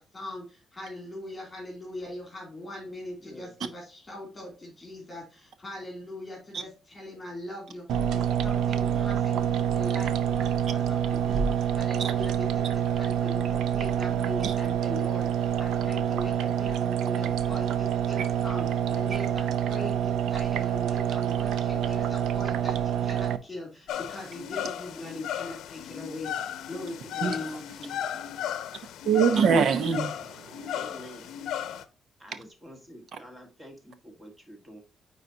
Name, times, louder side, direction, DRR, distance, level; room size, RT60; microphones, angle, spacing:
voice 1, 0.1-28.2, left 1 dB, 15° left, 2.8 m, -41 dB
voice 2, 3.2-3.5 8.9-9.7 29.1-29.7 30.7-31.3 32.2-34.8, equal, 15° right, 1.6 m, -48 dB
sound 1, 7.9-23.4, right 9 dB, 90° right, 0.5 m, -27 dB
sound 2, 23.9-31.8, left 9 dB, 90° left, 0.7 m, -35 dB
voice 3, 29.0-30.8, right 6 dB, 55° right, 0.8 m, -24 dB
9.4 x 4.1 x 2.8 m
cardioid pair, 170°, 0 cm